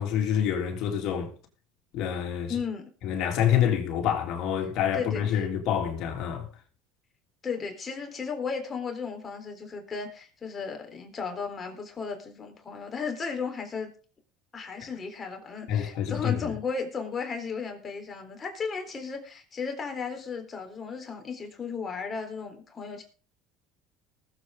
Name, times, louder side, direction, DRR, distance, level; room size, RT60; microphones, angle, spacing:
voice 1, 0.0-1.3 1.9-2.6 3.0-6.5 15.7-16.4, left 9 dB, 60° left, 3.4 m, -27 dB
voice 2, 2.5-2.9 4.9-5.4 7.4-13.9 14.5-23.0, left 5 dB, 30° left, 3.8 m, -35 dB
20.0 x 8.1 x 3.8 m
supercardioid pair, 90°, 0 cm